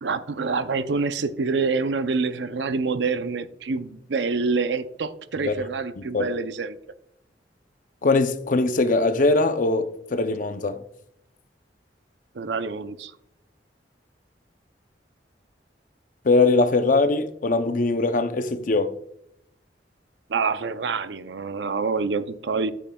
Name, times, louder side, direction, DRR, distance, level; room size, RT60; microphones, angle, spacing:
voice 1, 0.0-6.8 12.3-13.1 20.3-22.7, right 4 dB, 85° right, 0.6 m, -26 dB
voice 2, 6.0-6.3 8.0-10.8 16.2-18.9, left 3 dB, 50° left, 0.6 m, -21 dB
9.2 x 8.9 x 2.3 m
head